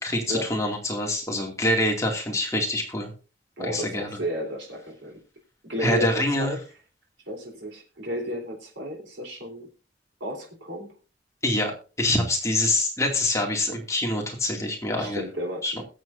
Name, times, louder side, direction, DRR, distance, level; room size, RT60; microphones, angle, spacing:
voice 1, 0.0-3.1 3.6-4.2 5.8-6.6 11.4-11.7 12.0-15.2 15.6-15.8, left 1 dB, 15° left, 1 dB, 2.3 m, -25 dB
voice 2, 3.6-5.2 5.6-6.6 7.3-9.7 10.2-10.9 15.0-15.8, equal, 90° right, 0 dB, 3.6 m, -33 dB
21.5 x 7.6 x 2.6 m, 0.35 s
head